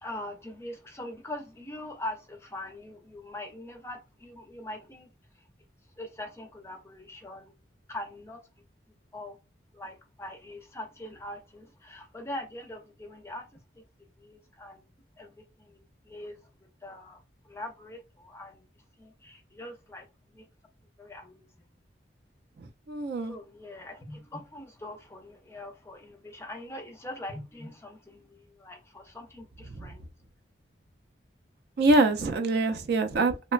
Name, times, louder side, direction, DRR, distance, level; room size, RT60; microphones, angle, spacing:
voice 1, 0.0-5.1 5.4-5.5 6.0-7.5 7.9-8.4 9.1-9.4 9.7-13.8 14.2-14.8 15.2-16.4 16.8-18.6 19.0-20.1 20.3-20.5 21.0-21.5 23.2-30.0, left 1 dB, 15° left, 0.5 m, -42 dB
voice 2, 22.6-23.4 29.7-29.9 31.8-33.5, right 2 dB, 60° right, 0.4 m, -25 dB
2.9 x 2.1 x 2.4 m
head